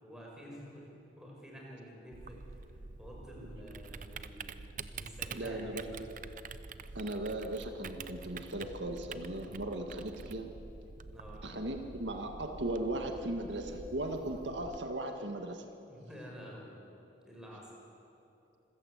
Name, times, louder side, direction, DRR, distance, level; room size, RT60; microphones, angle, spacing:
voice 1, 0.0-0.9 1.2-2.6 3.0-4.4 4.9-6.0 11.1-11.4 15.9-16.8 17.2-17.7, equal, 5° right, -3 dB, 5.4 m, -49 dB
Typing, 2.1-14.8, right 4 dB, 45° right, 0.7 m, -47 dB
voice 2, 5.3-6.1 6.9-10.5 11.4-15.6, right 1 dB, 85° right, 4 dB, 1.7 m, -37 dB
26.0 x 16.0 x 8.0 m, 2.8 s
head